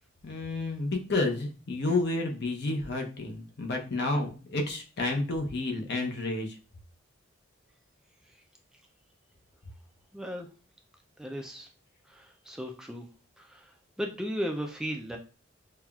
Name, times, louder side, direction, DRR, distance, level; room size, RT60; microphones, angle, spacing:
voice 1, 0.2-6.6, left 2 dB, 55° left, 3 dB, 0.7 m, -30 dB
voice 2, 10.1-10.5 11.2-11.7 12.1-13.1 13.4-13.7 14.0-15.2, equal, 5° right, 2 dB, 0.3 m, -35 dB
5.6 x 2.3 x 2.3 m, 0.35 s
head